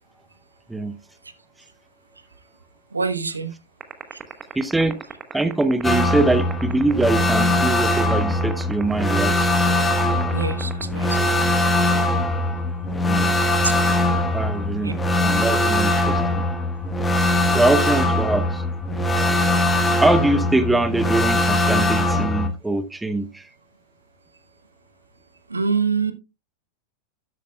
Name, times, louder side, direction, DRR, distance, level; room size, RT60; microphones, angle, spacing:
voice 1, 2.9-3.5 4.1-4.2 10.3-11.3 13.6-13.7 14.8-14.9 25.5-26.1, right 5 dB, 80° right, 1.0 m, -25 dB
sound 1, 3.8-11.3, right 8 dB, 25° right, 1.2 m, -33 dB
voice 2, 4.6-5.0 5.3-9.5 13.1-13.3 14.3-15.0 15.2-16.5 17.5-18.6 20.0-23.5, right 2 dB, 5° right, 0.7 m, -23 dB
sound 2, 5.8-22.5, left 1 dB, 15° left, 1.4 m, -21 dB
12.0 x 8.4 x 2.3 m
figure-of-eight pair, 90°, 0 cm